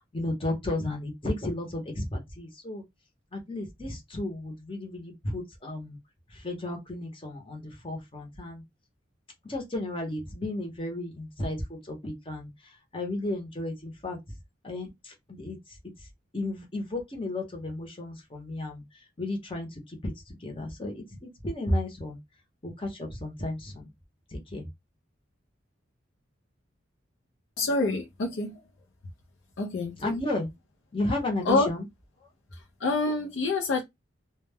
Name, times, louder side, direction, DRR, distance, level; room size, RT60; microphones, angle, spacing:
voice 1, 0.1-2.8 3.3-6.0 6.3-8.6 9.4-14.2 14.6-15.6 16.3-18.8 19.2-22.2 22.6-23.9 24.3-24.6 30.0-30.5 30.9-31.8, left 1 dB, 25° left, 0.8 m, -33 dB
voice 2, 27.6-28.6 29.6-30.1 31.5-31.7 32.5-33.8, left 3 dB, 70° left, 0.5 m, -27 dB
2.1 x 2.1 x 3.3 m
head